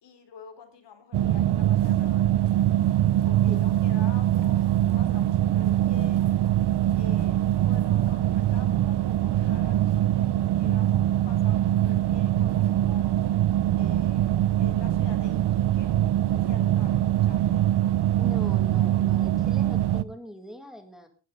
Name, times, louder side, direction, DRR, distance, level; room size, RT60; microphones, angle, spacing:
voice 1, 0.0-2.3 3.2-4.7 4.9-6.3 6.9-13.2 13.7-14.3 14.6-17.6, left 6 dB, 70° left, 7 dB, 4.1 m, -48 dB
sound 1, 1.1-20.0, right 13 dB, 65° right, 0.7 m, -23 dB
voice 2, 18.2-21.1, equal, ahead, 5 dB, 2.0 m, -41 dB
20.0 x 12.5 x 3.8 m, 0.34 s
wide cardioid pair, 175°, 44 cm